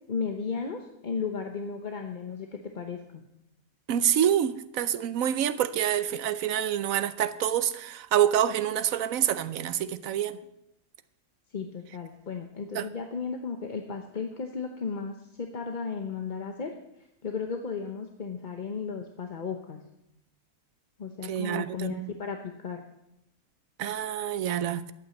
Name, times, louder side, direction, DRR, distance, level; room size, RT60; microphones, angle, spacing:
voice 1, 0.1-3.2 11.5-16.7 17.2-19.8 21.0-22.8, left 5 dB, 40° left, 0.9 m, -35 dB
voice 2, 3.9-10.4 12.7-12.9 21.2-22.1 23.8-24.8, right 10 dB, 70° right, 1.1 m, -27 dB
12.0 x 8.8 x 7.6 m
omnidirectional pair, 1.5 m